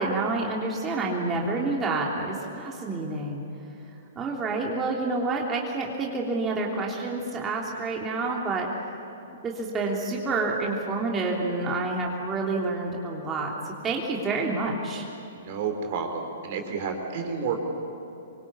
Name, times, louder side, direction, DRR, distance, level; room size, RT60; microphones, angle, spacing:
voice 1, 0.0-3.4 4.1-8.7 9.4-15.1, right 3 dB, 20° right, -2 dB, 3.2 m, -28 dB
voice 2, 15.4-17.6, right 5 dB, 45° right, 5 dB, 3.9 m, -30 dB
27.5 x 23.5 x 8.6 m, 3.0 s
figure-of-eight pair, 115°, 0 cm